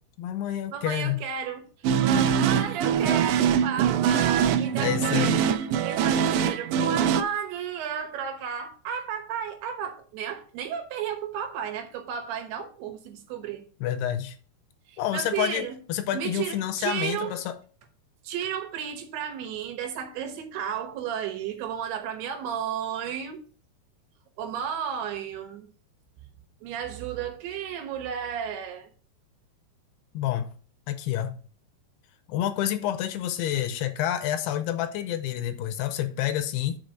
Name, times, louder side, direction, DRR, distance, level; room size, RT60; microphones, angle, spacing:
voice 1, 0.2-1.2 4.8-5.4 13.8-14.4 15.0-17.6 30.1-30.5 30.9-31.4 32.3-36.8, left 11 dB, 85° left, 2.6 m, -28 dB
voice 2, 0.7-1.7 2.0-13.6 14.9-15.8 16.1-17.4 18.2-23.4 24.4-25.7 26.6-28.9, right 8 dB, 70° right, 3.1 m, -33 dB
sound 1, 1.8-7.2, right 8 dB, 90° right, 3.0 m, -23 dB
6.1 x 5.1 x 6.4 m
omnidirectional pair, 5.0 m